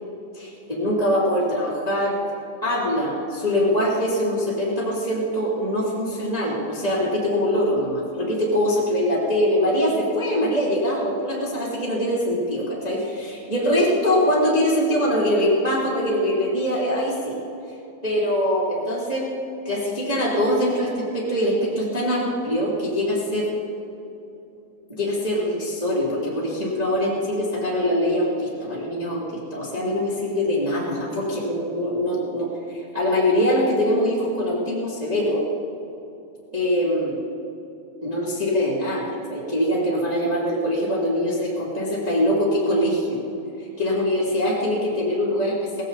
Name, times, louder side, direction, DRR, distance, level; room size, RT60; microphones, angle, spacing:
voice 1, 0.3-2.2 2.6-17.4 18.0-19.3 19.6-23.5 24.9-35.4 36.5-37.2 38.0-43.2 43.8-45.8, equal, 10° right, -6 dB, 2.5 m, -23 dB
18.0 x 16.0 x 4.2 m, 2.9 s
omnidirectional pair, 4.1 m